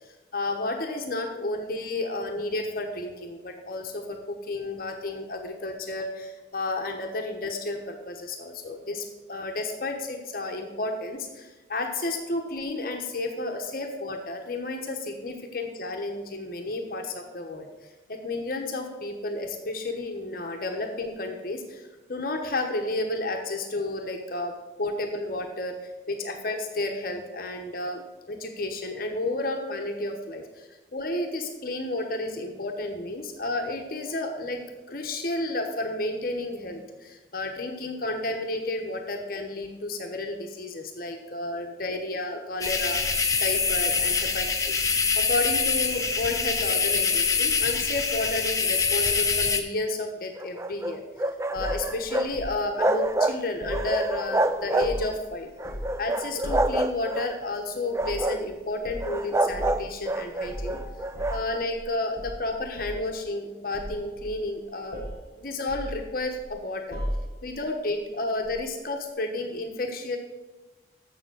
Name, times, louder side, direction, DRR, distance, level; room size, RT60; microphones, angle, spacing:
voice 1, 0.3-17.7 18.1-21.8 22.1-24.5 24.8-34.6 34.9-44.8 45.1-51.0 51.5-55.5 56.0-60.8 61.3-65.0 65.4-67.0 67.4-70.2, left 2 dB, 50° left, 3 dB, 1.1 m, -31 dB
sound 1, 42.6-49.6, left 5 dB, 20° left, 0.8 m, -25 dB
sound 2, 50.4-52.3 52.6-53.4 53.7-55.2 55.6-57.3 57.8-58.5 59.0-61.4, right 2 dB, 15° right, 0.3 m, -27 dB
sound 3, 51.5-52.6 53.6-54.3 54.6-55.2 55.6-56.0 56.4-56.8 58.0-58.3 58.8-59.1 59.5-59.8 60.4-61.9 62.2-63.1 63.7-64.6 64.9-65.2 65.7-66.5 66.9-67.5 68.5-68.6, equal, 50° right, 4.2 m, -35 dB
7.2 x 7.1 x 7.8 m, 1.2 s
head